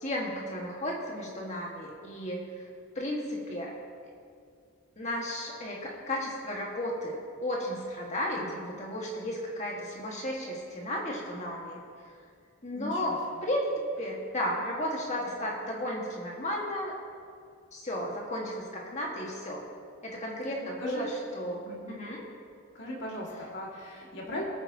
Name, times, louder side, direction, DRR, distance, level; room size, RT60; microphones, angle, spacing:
voice 1, 0.0-2.5 3.0-3.7 5.0-11.8 12.6-13.2 13.4-17.0 17.7-19.7 20.0-21.6 21.9-22.3, left 1 dB, 30° left, -2 dB, 1.7 m, -34 dB
voice 2, 8.3-8.7 12.7-13.4 20.8-21.1 21.6-22.0 22.7-24.4, left 1 dB, 50° left, -4 dB, 2.3 m, -39 dB
21.0 x 9.1 x 2.9 m, 2.3 s
head